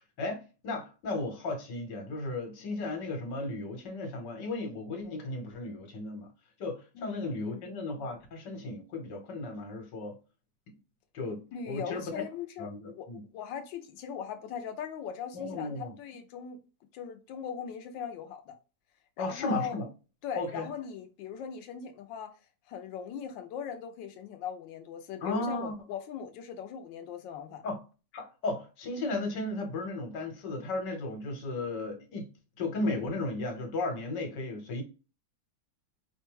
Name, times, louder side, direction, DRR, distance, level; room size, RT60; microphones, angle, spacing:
voice 1, 0.0-6.3 6.6-10.1 11.1-12.2 12.6-13.2 15.3-16.0 19.2-19.9 20.4-20.7 25.2-25.7 27.6-27.8 28.1-32.3 32.6-34.8, left 2 dB, 70° left, 1.8 m, -35 dB
voice 2, 7.0-7.6 11.5-13.1 13.3-16.6 16.9-18.6 19.2-19.8 20.2-22.3 22.7-27.6, left 8 dB, 90° left, 1.3 m, -39 dB
5.1 x 2.2 x 3.0 m
omnidirectional pair, 2.0 m